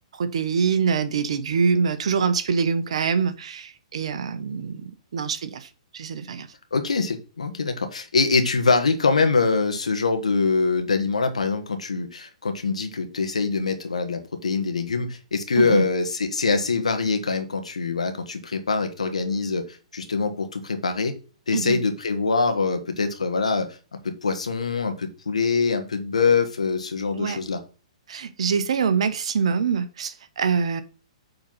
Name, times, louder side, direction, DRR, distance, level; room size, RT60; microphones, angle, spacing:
voice 1, 0.1-6.5 15.6-15.8 21.5-21.8 27.1-27.4 28.1-30.8, right 6 dB, 65° right, 12 dB, 1.0 m, -25 dB
voice 2, 6.7-21.1 21.5-23.7 24.0-27.6, left 4 dB, 80° left, 6 dB, 1.5 m, -24 dB
8.0 x 4.1 x 5.5 m, 0.36 s
figure-of-eight pair, 120°, 3 cm